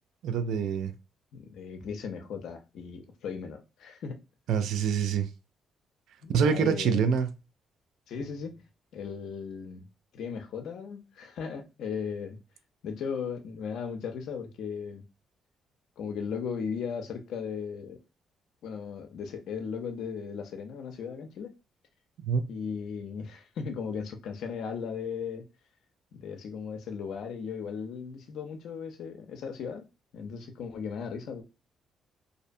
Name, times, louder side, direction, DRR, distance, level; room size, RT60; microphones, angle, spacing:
voice 1, 0.2-0.9 4.5-5.3 6.3-7.3 22.3-22.4, right 7 dB, 80° right, 0.3 m, -25 dB
voice 2, 1.3-4.2 6.2-7.1 8.1-8.6 8.9-9.9 10.1-12.4 12.8-15.0 16.0-18.0 18.6-21.5 22.5-25.5 26.1-29.8 30.1-31.4, left 6 dB, 75° left, 0.5 m, -37 dB
2.6 x 2.1 x 2.5 m
cardioid pair, 90°, 0 cm